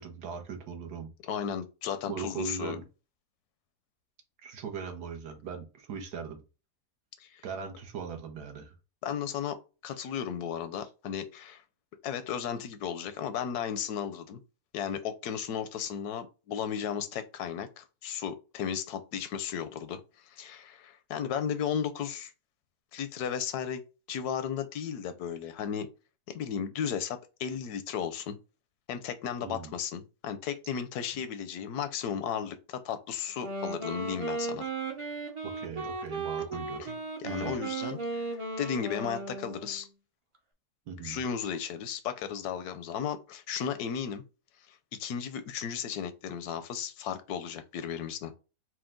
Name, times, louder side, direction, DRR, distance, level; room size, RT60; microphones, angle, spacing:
voice 1, 0.0-1.1 2.1-2.8 4.4-6.4 7.4-8.7 29.4-29.7 34.8-34.9 35.4-36.9 37.2-37.6 40.9-41.2, right 6 dB, 80° right, 1.4 m, -39 dB
voice 2, 1.2-2.8 7.2-7.4 9.0-9.6 9.8-11.6 12.0-14.4 14.7-22.3 22.9-23.8 24.1-25.9 26.3-28.4 28.9-34.6 36.8-39.9 41.0-44.2 44.7-48.3, left 8 dB, 80° left, 1.1 m, -35 dB
Wind instrument woodwind instrument, 33.3-39.8, right 3 dB, 35° right, 0.4 m, -36 dB
4.5 x 2.1 x 3.6 m
omnidirectional pair, 1.7 m